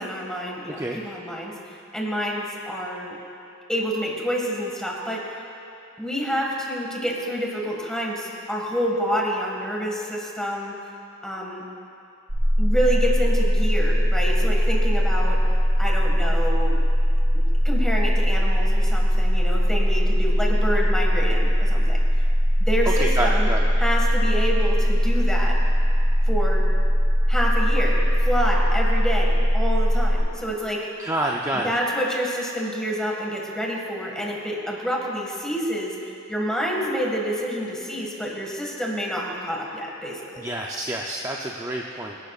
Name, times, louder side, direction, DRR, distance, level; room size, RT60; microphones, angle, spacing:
voice 1, 0.0-1.6 1.9-3.2 3.7-5.3 6.0-10.8 11.2-11.6 12.6-15.4 15.8-16.8 17.3-22.0 22.6-23.5 23.8-25.6 26.3-26.7 27.3-30.9 31.5-36.0 36.3-40.5, equal, 5° left, -2 dB, 1.8 m, -28 dB
voice 2, 0.7-1.0 23.0-23.7 31.0-31.7 40.4-42.2, right 1 dB, 15° right, -1 dB, 0.6 m, -28 dB
sound 1, 12.3-30.2, equal, 75° right, 3.0 m, -20 dB
25.0 x 11.5 x 2.4 m, 2.6 s
head